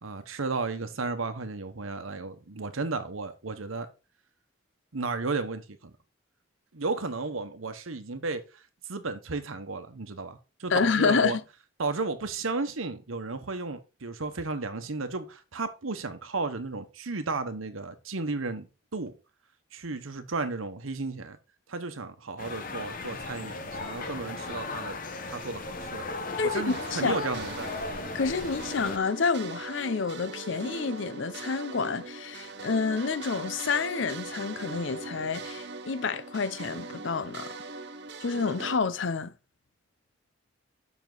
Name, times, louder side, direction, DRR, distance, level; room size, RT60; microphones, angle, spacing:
voice 1, 0.0-3.9 4.9-5.9 6.7-8.4 8.9-11.4 11.8-19.1 19.7-21.4 21.7-25.0 25.2-26.1 26.4-27.8, right 3 dB, 90° right, 1.1 m, -33 dB
voice 2, 10.7-11.4 26.4-27.2 28.1-37.5 38.2-39.3, left 5 dB, 65° left, 0.6 m, -28 dB
sound 1, 22.4-29.0, left 3 dB, 40° left, 0.9 m, -37 dB
sound 2, 26.7-38.8, right 3 dB, 55° right, 0.7 m, -41 dB
7.3 x 6.0 x 3.9 m
head